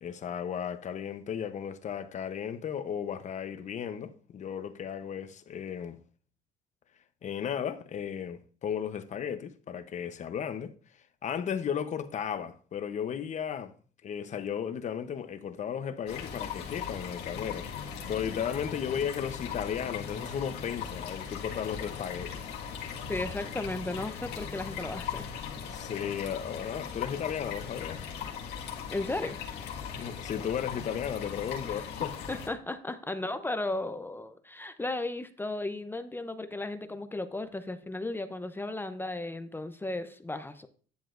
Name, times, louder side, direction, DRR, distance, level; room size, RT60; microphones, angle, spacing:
voice 1, 0.0-6.0 7.2-10.7 11.2-13.7 14.0-22.4 25.7-28.0 30.0-32.2, left 8 dB, 45° left, 0.8 m, -35 dB
sound 1, 16.1-32.5, left 7 dB, 80° left, 1.7 m, -39 dB
voice 2, 23.1-25.3 28.9-29.4 31.6-31.8 32.3-40.7, left 2 dB, 10° left, 0.6 m, -35 dB
10.5 x 7.3 x 2.5 m
cardioid pair, 110°, 17 cm